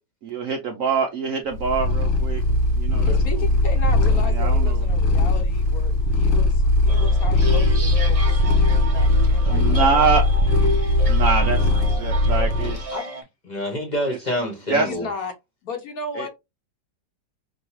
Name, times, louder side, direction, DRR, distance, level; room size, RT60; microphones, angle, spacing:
voice 1, 0.3-2.4 2.8-3.2 4.3-4.8 9.4-10.2 11.0-12.9 14.1-14.2 14.7-14.9 16.1-16.3, right 5 dB, 65° right, 0.8 m, -24 dB
Purr, 1.5-12.8, left 2 dB, 80° left, 1.8 m, -19 dB
voice 2, 3.0-8.5 8.8-10.1 12.9-13.1 14.8-15.3 15.6-16.3, left 4 dB, 60° left, 1.2 m, -34 dB
sound 1, 6.9-13.2, right 2 dB, 40° right, 0.5 m, -32 dB
voice 3, 13.5-15.1, equal, 30° left, 1.0 m, -27 dB
5.3 x 2.3 x 2.9 m
omnidirectional pair, 2.0 m